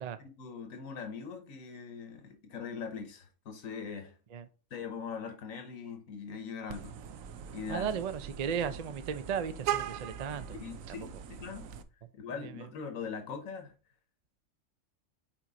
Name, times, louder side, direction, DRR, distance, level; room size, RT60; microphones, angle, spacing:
voice 1, 0.0-4.2 4.7-7.0 7.5-7.9 10.5-11.7 12.1-13.7, left 6 dB, 85° left, 1.5 m, -41 dB
Vehicle horn car horn honking, 6.7-11.8, right 9 dB, 85° right, 1.1 m, -40 dB
voice 2, 7.7-10.6 10.9-11.0, right 7 dB, 45° right, 0.5 m, -35 dB
5.9 x 4.6 x 3.9 m
omnidirectional pair, 1.4 m